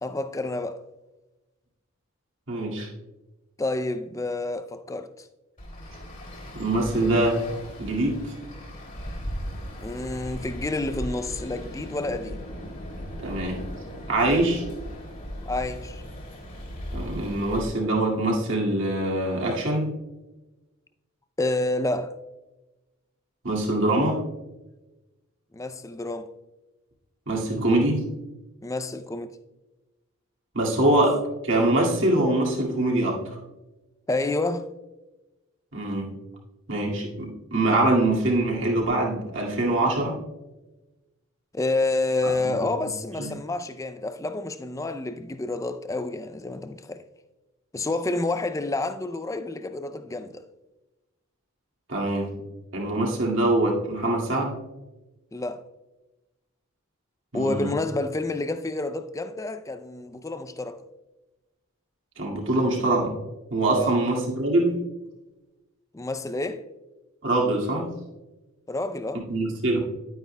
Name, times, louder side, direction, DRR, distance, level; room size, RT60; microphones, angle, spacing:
voice 1, 0.0-0.8 3.6-5.3 9.8-12.4 15.5-16.0 21.4-22.1 25.5-26.3 28.6-29.4 34.1-34.7 41.5-47.0 47.7-50.5 55.3-55.6 57.3-60.8 63.8-64.0 65.9-66.6 68.7-69.3, left 2 dB, 15° left, 0.4 m, -29 dB
voice 2, 2.5-2.9 6.5-7.4 7.8-8.2 13.2-13.6 14.1-14.6 16.9-19.9 23.4-24.2 27.3-28.0 30.5-33.4 35.7-36.1 36.7-40.2 42.2-42.5 43.2-43.3 51.9-52.3 52.7-54.5 57.3-57.7 62.2-63.1 63.5-64.8 67.2-67.9 69.1-69.8, right 2 dB, 60° right, 2.1 m, -24 dB
Traffic noise roadway noise, 5.6-17.7, equal, 40° left, 2.6 m, -37 dB
11.0 x 9.2 x 2.2 m
head